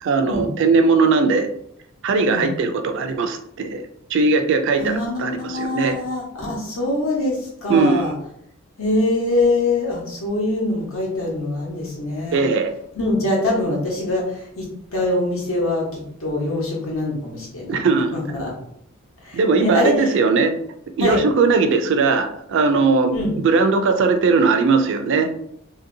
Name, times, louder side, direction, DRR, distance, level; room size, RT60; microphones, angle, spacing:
voice 1, 0.0-1.5 2.0-3.8 4.1-6.0 7.7-8.0 12.3-12.7 17.7-18.2 19.3-20.5 21.0-25.3, right 4 dB, 60° right, 7 dB, 0.4 m, -19 dB
voice 2, 4.8-8.1 8.8-12.4 12.9-17.8 18.1-18.5 19.2-20.1 21.0-21.2 23.1-23.3, left 2 dB, 80° left, -3 dB, 1.1 m, -23 dB
2.8 x 2.7 x 2.6 m, 0.71 s
head